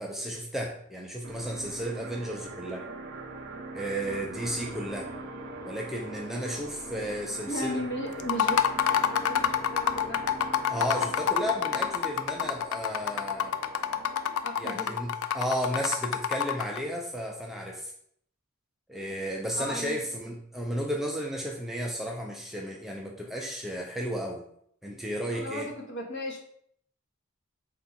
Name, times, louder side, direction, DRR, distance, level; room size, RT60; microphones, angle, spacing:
voice 1, 0.0-2.8 3.7-5.1 5.6-7.8 10.7-13.5 14.6-17.9 18.9-24.4 24.8-25.7, equal, ahead, -1 dB, 0.3 m, -33 dB
sound 1, 1.2-14.6, right 2 dB, 55° right, 0.5 m, -42 dB
voice 2, 7.5-10.3 14.4-15.0 19.5-20.2 25.3-26.4, equal, 55° left, 0 dB, 1.0 m, -36 dB
sound 2, 8.2-16.8, left 9 dB, 75° left, 0.3 m, -27 dB
4.4 x 2.4 x 4.0 m, 0.67 s
head